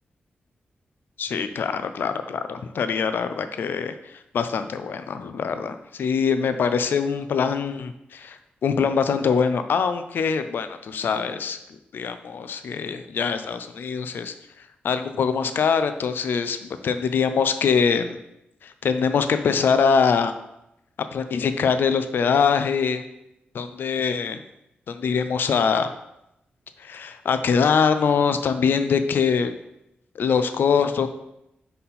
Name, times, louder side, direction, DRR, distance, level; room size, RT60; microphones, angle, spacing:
voice 1, 1.2-11.6 11.9-14.3 14.8-18.2 18.6-20.3 21.1-23.0 23.5-24.4 24.9-25.9 26.8-29.5 30.1-31.1, left 6 dB, 70° left, 10 dB, 0.4 m, -23 dB
5.6 x 4.1 x 4.1 m, 0.84 s
wide cardioid pair, 130°, 4 cm